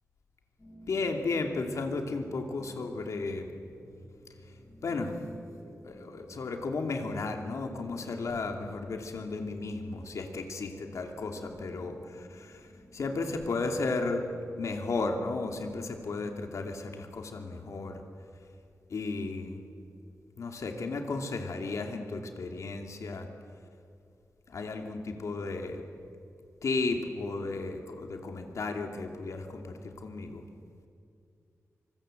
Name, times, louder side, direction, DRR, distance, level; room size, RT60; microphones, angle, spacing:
sound 1, 0.6-15.6, equal, 15° left, 5.8 m, -54 dB
voice 1, 0.9-3.5 4.8-5.1 5.8-14.2 14.6-18.0 18.9-19.6 20.4-23.3 24.5-25.8 26.6-30.4, left 3 dB, 65° left, 4 dB, 2.6 m, -34 dB
26.0 x 25.0 x 7.8 m, 2.5 s
wide cardioid pair, 165°, 6 cm